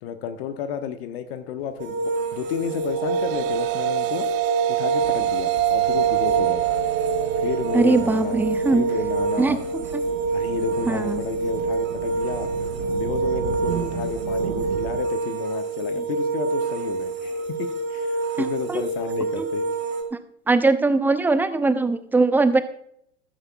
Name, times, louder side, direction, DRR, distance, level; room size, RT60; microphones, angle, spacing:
voice 1, 0.0-4.3 4.7-6.6 7.4-9.6 10.3-12.5 12.9-19.6, left 8 dB, 50° left, 9 dB, 1.1 m, -32 dB
sound 1, 1.8-20.0, right 3 dB, 30° right, 2.1 m, -27 dB
sound 2, 2.6-11.2, right 16 dB, 45° right, 0.7 m, -27 dB
sound 3, 5.0-15.0, right 6 dB, 75° right, 1.6 m, -36 dB
voice 2, 7.7-8.9 9.4-10.0 10.9-11.2 18.4-18.8 20.5-22.6, right 3 dB, 5° right, 12 dB, 0.5 m, -21 dB
15.5 x 12.5 x 2.3 m, 0.69 s
figure-of-eight pair, 95°, 39 cm